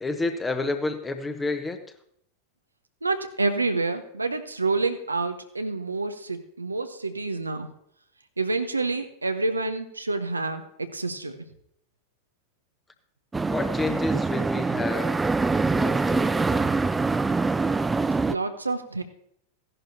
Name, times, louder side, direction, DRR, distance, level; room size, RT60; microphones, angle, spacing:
voice 1, 0.0-1.8 13.5-15.2 15.7-16.8, left 2 dB, 10° left, 7 dB, 1.1 m, -30 dB
voice 2, 3.0-7.7 8.4-11.4 18.3-19.0, right 3 dB, 80° right, 8 dB, 0.8 m, -28 dB
sound 1, 13.3-18.4, right 3 dB, 10° right, 0.3 m, -24 dB
16.0 x 11.0 x 2.8 m, 0.70 s
figure-of-eight pair, 90°, 0 cm